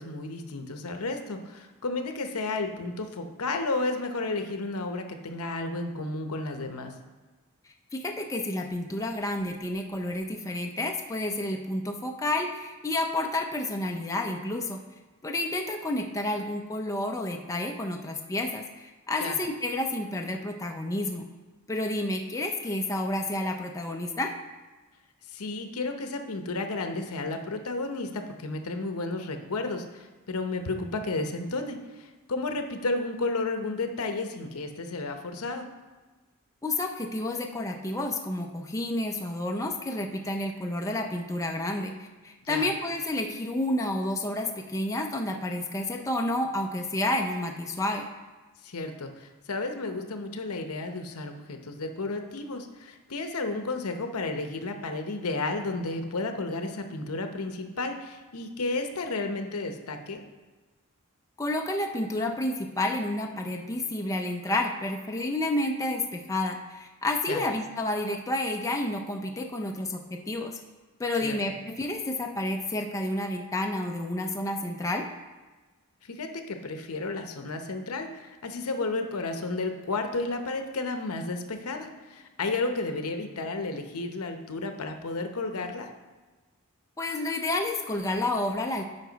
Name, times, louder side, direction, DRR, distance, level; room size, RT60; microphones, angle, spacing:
voice 1, 0.0-6.9 19.2-19.4 25.3-35.7 42.4-42.7 48.6-60.2 67.3-67.4 71.2-71.3 76.0-85.9, left 3 dB, 75° left, 6 dB, 0.8 m, -32 dB
voice 2, 7.9-14.8 15.2-21.3 21.7-24.3 36.6-48.1 61.4-70.6 71.0-75.0 87.0-88.8, left 1 dB, 15° left, 2 dB, 0.5 m, -30 dB
9.6 x 5.6 x 4.0 m, 1.2 s
head